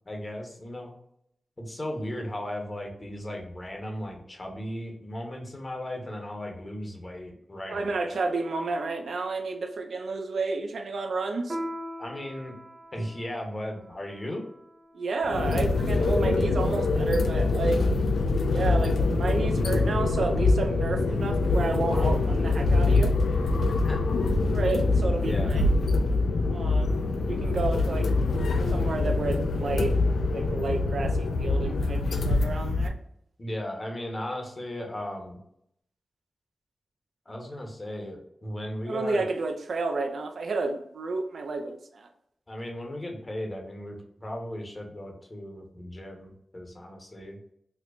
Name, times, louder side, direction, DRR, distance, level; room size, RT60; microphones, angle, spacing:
voice 1, 0.1-0.9 1.6-8.2 12.0-12.5 12.9-14.4 23.8-24.0 25.3-25.6 33.4-35.4 37.3-39.2 42.5-47.4, left 1 dB, 40° left, 2 dB, 1.0 m, -36 dB
voice 2, 7.7-11.6 14.9-17.8 18.5-23.1 24.5-25.7 26.5-28.1 28.7-30.0 30.3-32.9 38.9-42.1, right 3 dB, 80° right, 5 dB, 0.4 m, -31 dB
Piano, 11.5-16.4, equal, 45° right, 0.7 m, -42 dB
sound 1, 15.2-32.9, left 3 dB, 85° left, 0.3 m, -24 dB
4.4 x 2.1 x 2.5 m, 0.74 s
cardioid pair, 40°, 0 cm